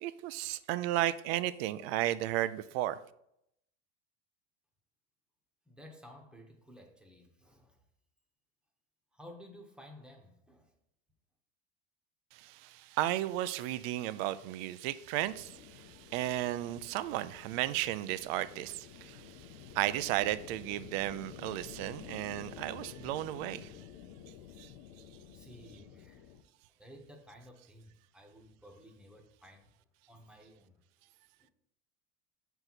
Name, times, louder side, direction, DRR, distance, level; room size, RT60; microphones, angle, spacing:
voice 1, 0.0-3.0 12.3-23.8 24.6-24.7, right 14 dB, 65° right, 0.5 m, -34 dB
voice 2, 5.7-7.8 9.1-10.7 25.3-26.4 26.8-29.7 30.1-30.8 31.4-31.5, equal, 5° right, 1.0 m, -54 dB
sound 1, 15.3-26.4, left 9 dB, 75° left, 0.7 m, -51 dB
6.5 x 4.6 x 4.0 m
supercardioid pair, 135°, 32 cm